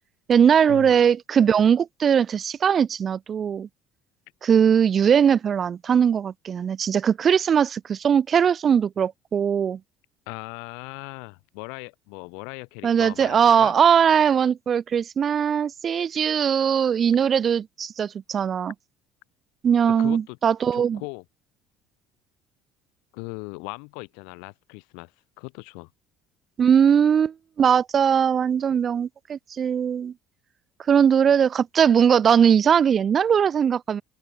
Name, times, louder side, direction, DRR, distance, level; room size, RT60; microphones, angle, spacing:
voice 1, 0.3-3.7 4.4-9.8 12.8-18.7 19.6-21.0 26.6-30.1 30.9-34.0, right 7 dB, 30° right, 0.8 m, -20 dB
voice 2, 10.3-13.7 20.0-20.4 20.7-21.2 23.1-25.1 25.4-25.9, left 36 dB, 85° left, 5.8 m, -38 dB
open air
cardioid pair, 155°, 0 cm